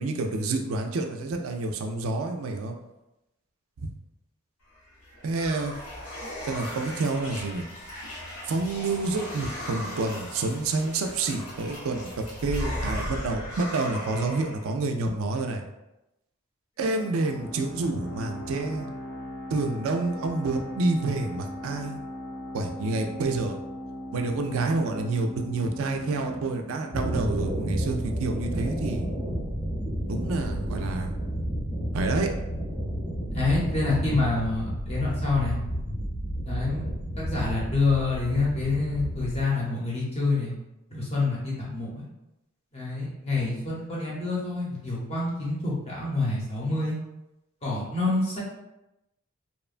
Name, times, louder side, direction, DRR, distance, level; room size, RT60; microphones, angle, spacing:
voice 1, 0.0-2.8 3.8-3.9 5.2-5.7 6.4-7.6 8.5-12.1 12.4-15.6 16.8-18.9 19.5-22.0 22.5-23.6 24.1-29.1 30.1-31.1 31.9-32.3, right 3 dB, 70° right, 4 dB, 0.3 m, -28 dB
sound 1, 4.7-14.7, equal, 90° left, 0.8 m, -37 dB
sound 2, 16.8-28.2, equal, 60° left, 0.4 m, -39 dB
sound 3, 26.9-39.4, equal, 5° right, 0.8 m, -31 dB
voice 2, 33.3-35.6 36.4-36.8 37.2-40.5 40.9-42.1 42.7-47.0 47.6-48.4, left 3 dB, 30° left, -6 dB, 0.7 m, -27 dB
2.9 x 2.1 x 2.4 m, 0.92 s
head